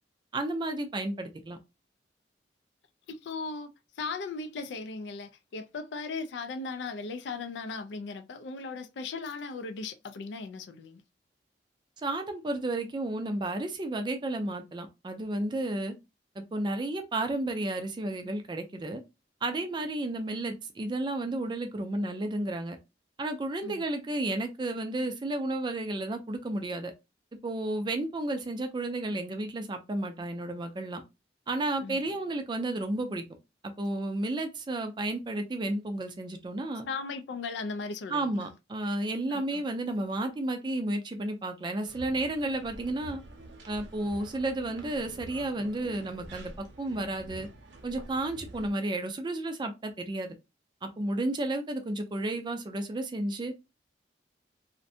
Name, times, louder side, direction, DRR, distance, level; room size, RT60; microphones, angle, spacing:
voice 1, 0.3-1.6 12.0-15.9 16.4-19.0 19.4-22.8 23.2-26.9 27.4-31.0 31.5-33.2 33.6-36.9 38.1-43.2 43.7-47.5 47.8-50.4 50.8-53.5, right 2 dB, 25° right, 0.3 m, -32 dB
voice 2, 3.1-3.7 4.0-11.0 23.6-23.8 31.8-32.0 36.9-38.5 39.3-39.6, left 4 dB, 80° left, 0.4 m, -37 dB
sound 1, 41.8-48.7, right 2 dB, 90° right, 0.6 m, -47 dB
2.5 x 2.1 x 2.5 m
head